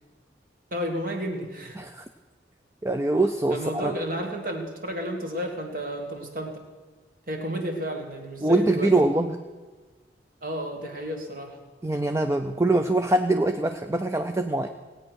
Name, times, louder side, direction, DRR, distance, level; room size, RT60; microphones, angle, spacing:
voice 1, 0.7-1.8 3.5-6.6 7.3-8.9 10.4-11.6, equal, 50° right, 2 dB, 2.1 m, -32 dB
voice 2, 2.8-4.0 8.4-9.4 11.8-14.7, right 2 dB, 15° right, 7 dB, 0.4 m, -23 dB
17.5 x 8.8 x 6.3 m, 1.3 s
head